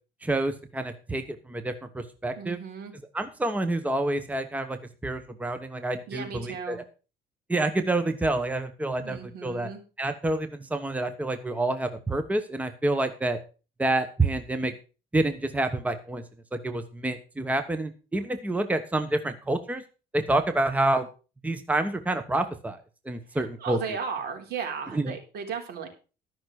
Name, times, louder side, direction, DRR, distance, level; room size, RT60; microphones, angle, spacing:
voice 1, 0.2-2.6 3.1-6.8 7.5-9.7 10.0-13.4 13.8-14.7 15.1-16.2 16.5-19.8 20.1-21.1 21.4-22.8 23.0-23.8 24.9-25.1, right 2 dB, 10° right, 9 dB, 1.1 m, -28 dB
voice 2, 2.4-2.9 6.1-6.8 9.0-9.8 23.3-25.9, right 6 dB, 70° right, 3 dB, 3.7 m, -35 dB
13.0 x 6.2 x 6.5 m, 0.34 s
cardioid pair, 110°, 17 cm